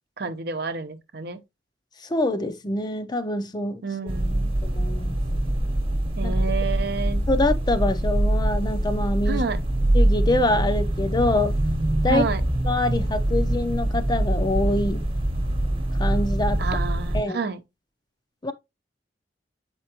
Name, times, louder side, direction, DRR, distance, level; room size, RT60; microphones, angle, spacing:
voice 1, 0.2-1.4 3.8-4.5 6.2-7.2 9.3-9.6 12.1-12.4 16.6-17.6, right 4 dB, 65° right, 0.8 m, -29 dB
voice 2, 2.1-3.8 4.6-5.2 6.2-6.3 7.3-9.4 9.9-11.6 12.0-12.3 12.6-15.0 16.0-16.6 17.1-17.4 18.4-18.5, left 2 dB, 25° left, 0.6 m, -25 dB
sound 1, 4.1-17.2, right 1 dB, 30° right, 1.1 m, -24 dB
7.7 x 4.5 x 2.9 m
head